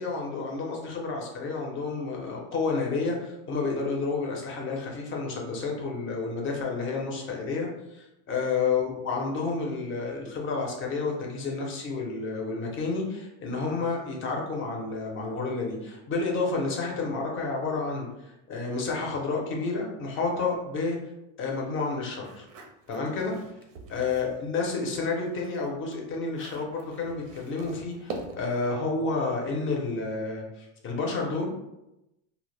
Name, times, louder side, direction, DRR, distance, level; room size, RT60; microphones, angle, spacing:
voice 1, 0.0-21.0 21.4-22.5 22.9-23.3 23.9-31.7, left 4 dB, 30° left, 0 dB, 0.6 m, -30 dB
sound 1, 22.2-24.4 24.8-28.6, right 3 dB, 80° right, 0.6 m, -44 dB
2.1 x 2.0 x 3.2 m, 0.91 s
supercardioid pair, 130°, 38 cm